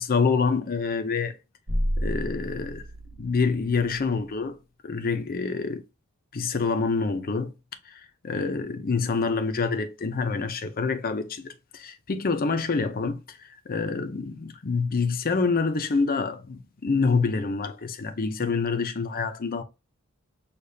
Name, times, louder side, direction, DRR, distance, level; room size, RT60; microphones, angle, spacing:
voice 1, 0.0-1.4 2.0-2.8 3.2-4.6 4.8-5.8 6.3-7.5 7.9-19.6, left 4 dB, 40° left, 0.6 m, -27 dB
sound 1, 1.7-4.1, equal, 80° right, 1.1 m, -31 dB
6.6 x 2.4 x 2.7 m
head